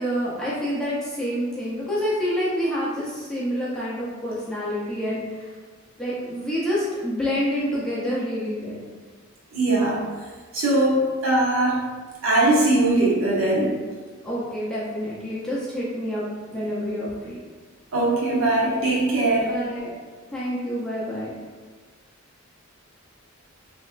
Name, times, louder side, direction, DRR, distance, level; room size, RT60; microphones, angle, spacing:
voice 1, 0.0-5.5 6.0-8.8 14.2-17.4 19.3-19.9 20.3-21.3, equal, 5° left, -9 dB, 0.7 m, -28 dB
voice 2, 9.5-10.0 10.5-11.8 12.2-13.7 17.9-19.5, right 2 dB, 80° right, -4 dB, 0.9 m, -20 dB
3.5 x 3.0 x 2.5 m, 1.5 s
head